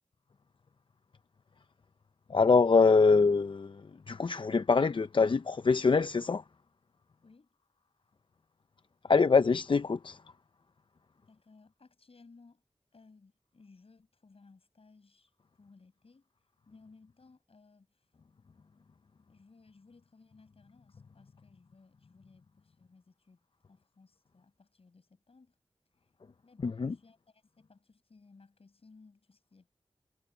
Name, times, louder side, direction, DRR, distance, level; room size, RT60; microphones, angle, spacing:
voice 1, 2.3-3.8 4.1-6.4 9.1-10.2 26.6-26.9, left 4 dB, 55° left, 0.5 m, -24 dB
voice 2, 11.1-12.6 12.9-16.3 16.7-18.1 19.3-23.4 23.7-25.6 26.0-26.1 26.4-29.7, left 4 dB, 75° left, 6.9 m, -60 dB
wide cardioid pair, 60°, 10 cm